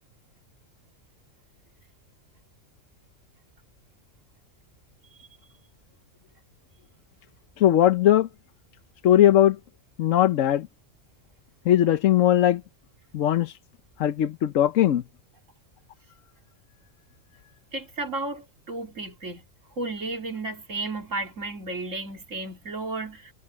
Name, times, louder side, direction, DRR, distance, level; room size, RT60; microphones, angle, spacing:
voice 1, 7.6-8.3 9.0-9.6 10.0-10.7 11.7-12.6 13.1-13.6 14.0-15.0, left 12 dB, 90° left, 1.1 m, -19 dB
voice 2, 17.7-19.4 19.8-23.3, right 2 dB, 90° right, 3.2 m, -33 dB
omnidirectional pair, 1.3 m